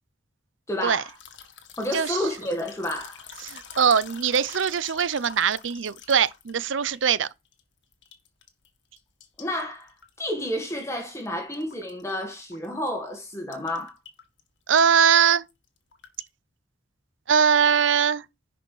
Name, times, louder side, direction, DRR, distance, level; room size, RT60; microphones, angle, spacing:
voice 1, 0.7-1.1 1.8-3.3 9.4-14.0, left 1 dB, 15° left, 1.8 m, -30 dB
sound 1, 1.1-7.6 7.9-8.7 9.0-11.3 11.5-12.9 13.1-13.2 13.5-14.4 14.7-14.9 15.3-16.3, left 7 dB, 80° left, 1.7 m, -46 dB
voice 2, 3.4-7.3 14.7-15.4 17.3-18.2, right 7 dB, 90° right, 0.6 m, -21 dB
10.5 x 5.2 x 4.8 m
head